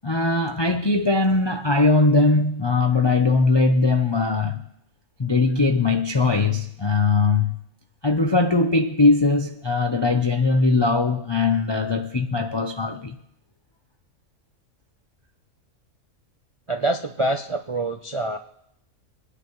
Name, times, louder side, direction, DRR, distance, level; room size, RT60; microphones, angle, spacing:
voice 1, 0.0-4.7 5.2-7.6 8.0-13.2, left 3 dB, 45° left, 0.3 m, -20 dB
voice 2, 16.7-18.4, right 2 dB, 45° right, 0.4 m, -25 dB
25.5 x 9.8 x 3.1 m
omnidirectional pair, 1.5 m